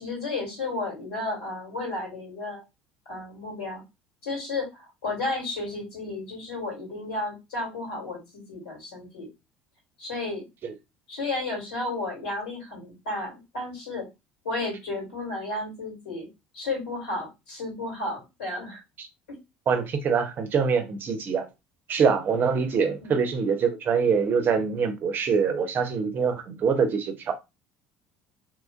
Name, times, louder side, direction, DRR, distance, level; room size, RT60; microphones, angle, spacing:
voice 1, 0.0-2.6 3.1-3.8 4.2-9.3 10.0-10.5 11.1-14.1 14.4-16.3 16.5-18.8 19.3-19.4 23.0-23.2, left 2 dB, 80° left, 1.9 m, -33 dB
voice 2, 19.7-21.5 21.9-27.3, right 6 dB, 45° right, 0.6 m, -24 dB
3.0 x 2.5 x 2.3 m
hypercardioid pair, 65°, 5 cm